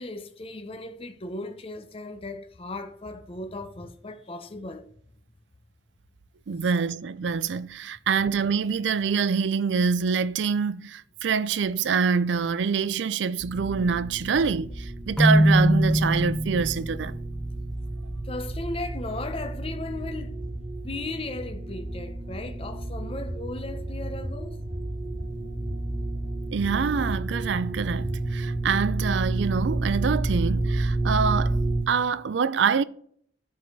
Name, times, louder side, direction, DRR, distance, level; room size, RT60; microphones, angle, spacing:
voice 1, 0.0-4.9 6.6-6.7 18.2-20.3 20.8-24.6, left 2 dB, 30° left, 0.7 m, -36 dB
voice 2, 6.5-17.2 26.5-31.6 31.9-32.8, right 5 dB, 75° right, 0.4 m, -25 dB
sound 1, 13.4-31.8, right 2 dB, 55° right, 1.9 m, -31 dB
sound 2, 13.7-14.4 14.7-15.3 15.7-16.3 16.6-17.3 17.6-18.2 18.5-19.2 19.5-20.2 20.4-21.1 21.4-22.1 22.3-23.0 23.3-23.9 24.2-24.9 25.2-25.8 26.1-26.2 26.6-27.3 27.6-27.7 28.0-28.5, equal, 30° right, 3.7 m, -41 dB
Keyboard (musical), 15.2-17.0, equal, 5° left, 0.3 m, -21 dB
12.0 x 4.7 x 4.6 m
head